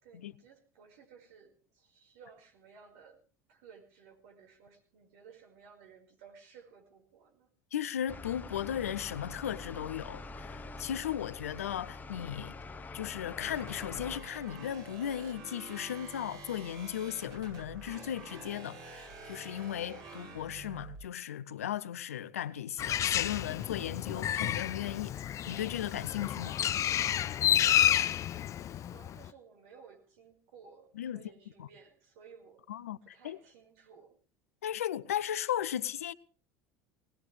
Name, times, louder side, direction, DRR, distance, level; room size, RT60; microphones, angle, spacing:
voice 1, 0.0-3.2 3.5-7.5 28.8-32.6 33.0-34.2, right 6 dB, 75° right, 5.0 m, -57 dB
voice 2, 7.7-12.6 12.9-26.6 30.9-31.3 31.6-31.7 32.7-33.0 33.2-33.4 34.6-36.1, left 10 dB, 85° left, 0.7 m, -36 dB
sound 1, 8.1-14.2, left 3 dB, 20° left, 1.1 m, -45 dB
sound 2, 13.4-21.0, right 3 dB, 55° right, 5.9 m, -48 dB
Bird, 22.8-29.3, left 11 dB, 40° left, 0.6 m, -30 dB
19.5 x 19.0 x 3.3 m
hypercardioid pair, 75°, 8 cm